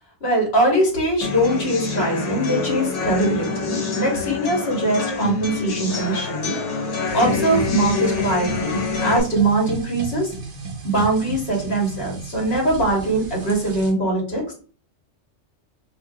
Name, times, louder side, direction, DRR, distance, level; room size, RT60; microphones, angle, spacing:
voice 1, 0.2-6.6 7.1-10.3 10.8-14.5, right 1 dB, 60° left, -3 dB, 1.6 m, -22 dB
sound 1, 1.2-9.2, left 4 dB, 80° left, 1.3 m, -26 dB
sound 2, 7.1-13.9, right 4 dB, 70° right, 1.0 m, -33 dB
2.9 x 2.7 x 2.7 m, 0.40 s
omnidirectional pair, 1.2 m